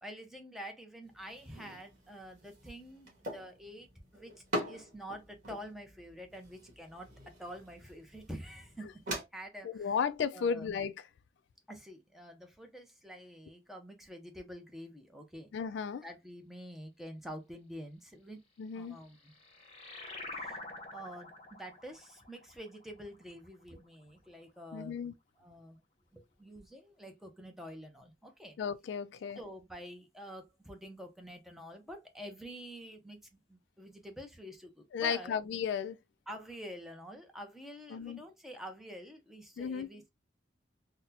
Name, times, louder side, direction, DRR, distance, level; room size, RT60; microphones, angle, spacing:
voice 1, 0.0-7.1 7.4-9.9 10.3-10.7 11.7-15.5 16.0-18.4 18.7-19.3 20.3-20.6 20.9-25.0 25.4-25.8 26.1-28.6 29.3-35.3 36.3-40.1, equal, ahead, 0.6 m, -47 dB
sound 1, 1.0-9.2, equal, 45° right, 1.5 m, -44 dB
voice 2, 9.6-10.9 15.5-16.0 18.6-19.0 24.7-25.1 28.6-29.4 34.9-36.0 37.9-38.2 39.6-39.9, left 6 dB, 75° left, 0.3 m, -34 dB
sound 2, 18.9-23.9, left 2 dB, 35° left, 0.8 m, -47 dB
3.9 x 2.1 x 2.7 m
head